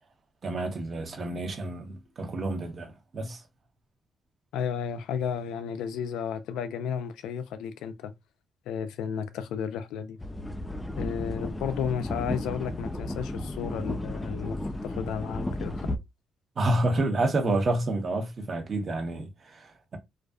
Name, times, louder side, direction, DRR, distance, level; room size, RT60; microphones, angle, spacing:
voice 1, 0.4-3.4 16.6-20.0, right 2 dB, 45° right, 0.8 m, -29 dB
voice 2, 4.5-8.1 8.7-10.2 11.0-15.9, left 7 dB, 90° left, 0.4 m, -33 dB
sound 1, 10.2-16.0, left 1 dB, 10° left, 0.4 m, -34 dB
2.4 x 2.3 x 2.3 m
cardioid pair, 90°, 0 cm